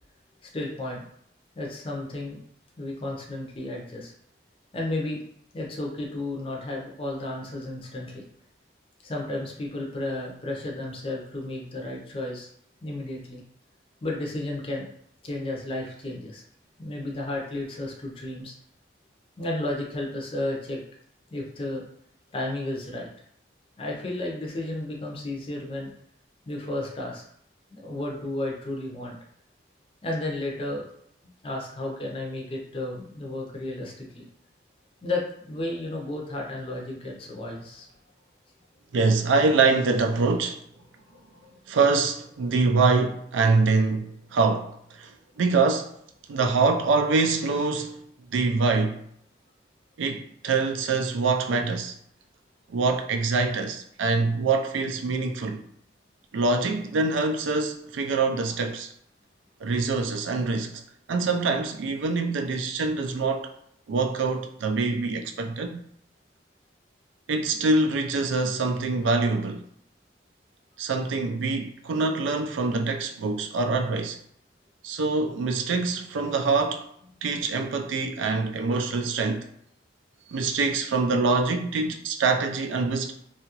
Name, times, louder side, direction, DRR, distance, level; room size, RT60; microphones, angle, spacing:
voice 1, 0.5-1.0 1.5-2.4 2.8-4.1 4.7-5.2 5.5-8.2 9.0-12.5 12.8-13.4 14.0-14.9 15.2-16.4 16.8-18.5 19.4-20.8 21.3-21.8 22.3-23.1 23.8-25.9 26.5-27.2 27.7-29.2 30.0-30.9 31.4-34.3 35.0-37.9 41.1-41.6, left 2 dB, 30° left, 0.5 m, -33 dB
voice 2, 38.9-40.6 41.7-45.1 45.4-46.0 46.3-49.0 50.0-51.9 52.7-55.6 56.3-58.9 59.6-60.8 61.1-63.5 63.9-65.8 67.3-69.6 70.8-74.2 74.8-76.9 77.2-79.5 80.3-83.1, right 3 dB, 90° right, 0.4 m, -25 dB
2.8 x 2.3 x 2.8 m
head